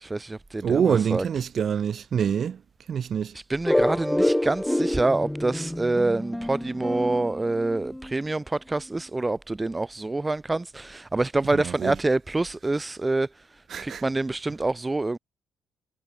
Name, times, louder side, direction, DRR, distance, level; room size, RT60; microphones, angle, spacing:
voice 1, 0.0-1.2 3.5-13.3 13.8-15.2, right 2 dB, 20° right, 4.1 m, -26 dB
voice 2, 0.6-2.6 2.9-3.4 11.5-12.0 13.7-14.0, right 7 dB, 55° right, 7.7 m, -26 dB
sound 1, 3.7-8.2, left 1 dB, 5° left, 4.6 m, -27 dB
cardioid pair, 90°, 0 cm